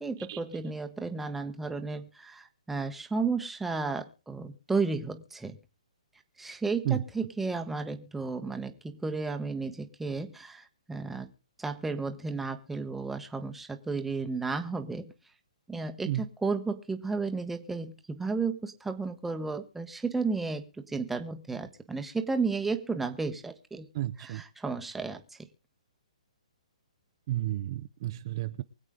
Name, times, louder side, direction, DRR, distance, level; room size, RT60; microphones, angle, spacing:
voice 1, 0.0-5.6 6.4-11.3 11.6-15.1 15.7-23.9 24.2-25.2, right 4 dB, 5° right, 7 dB, 1.0 m, -33 dB
voice 2, 23.9-24.4 27.3-28.6, right 14 dB, 40° right, 11 dB, 0.6 m, -31 dB
24.0 x 8.1 x 3.7 m, 0.33 s
hypercardioid pair, 155°, 4 cm